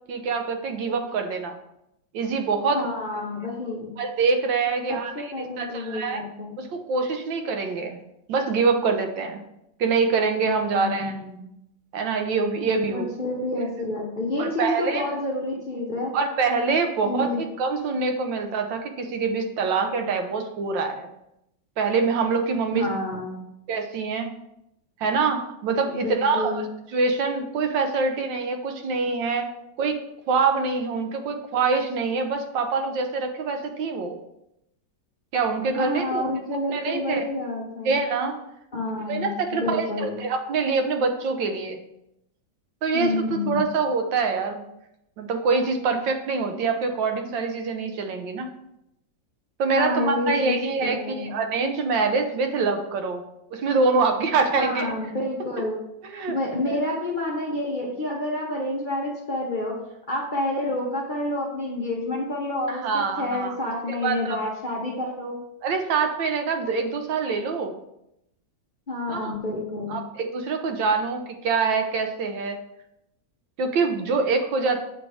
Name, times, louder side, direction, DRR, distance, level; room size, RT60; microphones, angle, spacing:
voice 1, 0.1-1.6 2.1-2.8 4.0-6.2 6.6-8.0 8.3-9.4 9.8-11.2 11.9-13.1 14.4-15.1 16.1-21.1 21.8-22.9 23.7-24.3 25.0-26.6 26.9-29.4 29.8-30.0 30.3-34.2 35.3-36.2 36.7-37.3 37.8-38.4 39.1-41.8 42.8-44.6 45.2-48.5 49.6-53.2 53.5-54.9 56.0-56.4 56.7-56.8 62.7-63.5 63.9-64.4 65.6-67.7 69.1-69.3 69.9-72.6 73.6-74.8, right 4 dB, 85° right, 5 dB, 1.5 m, -25 dB
voice 2, 2.7-3.9 4.9-6.6 10.7-11.4 12.9-16.1 17.0-17.4 22.7-23.4 25.9-26.6 35.7-38.0 38.7-40.2 42.9-43.6 49.7-51.4 54.5-55.8 56.3-59.7 60.1-62.8 63.2-65.4 68.9-70.0, left 2 dB, 35° left, -3 dB, 0.8 m, -29 dB
7.5 x 3.4 x 4.8 m, 0.82 s
omnidirectional pair, 2.0 m